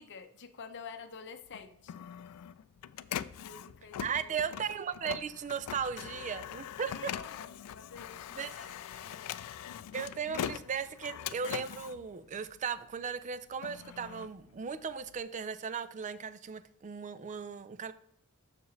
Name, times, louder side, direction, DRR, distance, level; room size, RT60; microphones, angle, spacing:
voice 1, 0.0-1.9 3.4-4.3 6.8-9.4, left 5 dB, 55° left, 0.7 m, -49 dB
Printer, 1.5-12.9 13.4-15.2, left 10 dB, 85° left, 0.3 m, -42 dB
voice 2, 4.0-7.1 8.4-8.7 9.9-17.9, right 6 dB, 35° right, 0.4 m, -37 dB
7.0 x 6.6 x 3.2 m
head